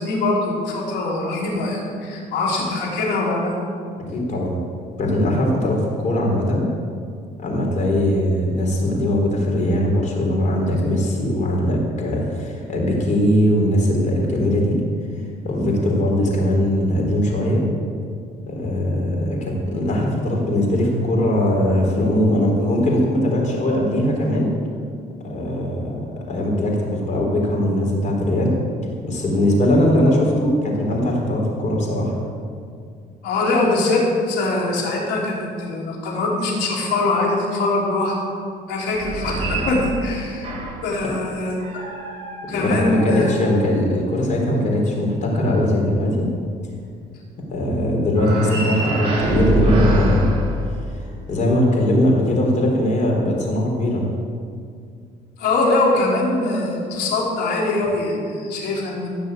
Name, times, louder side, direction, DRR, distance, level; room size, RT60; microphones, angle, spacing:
voice 1, 0.0-3.5 33.2-38.1 38.7-40.5 40.8-41.8 42.5-43.3 47.8-47.9 55.4-59.1, left 2 dB, 85° left, -3 dB, 3.7 m, -22 dB
voice 2, 4.1-4.6 5.0-6.7 7.4-14.8 15.4-17.6 18.5-24.5 25.2-28.6 29.0-32.1 42.5-46.3 47.5-50.3 50.9-54.1, left 1 dB, 45° left, -1 dB, 3.9 m, -20 dB
sound 1, 38.9-41.0 41.6-44.0 48.1-51.3, right 1 dB, 35° right, 3.8 m, -25 dB
16.5 x 5.6 x 9.0 m, 2.2 s
cardioid pair, 110°, 17 cm